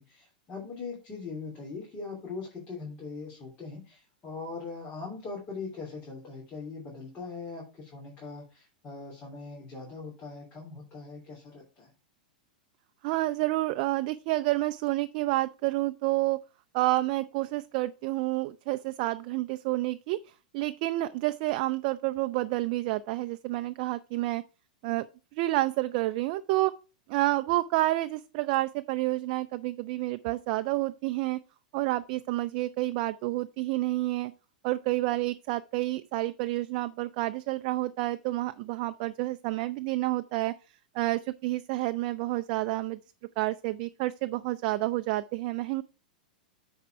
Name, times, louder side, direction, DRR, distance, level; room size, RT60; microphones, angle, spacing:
voice 1, 0.0-11.9, left 4 dB, 30° left, 3.1 m, -41 dB
voice 2, 13.0-16.4 16.7-20.2 20.5-24.4 24.8-25.1 25.3-26.7 27.1-31.4 31.7-34.3 34.6-40.5 40.9-43.0 43.4-45.8, right 18 dB, 50° right, 0.4 m, -29 dB
9.3 x 4.4 x 4.5 m
hypercardioid pair, 120°, 5 cm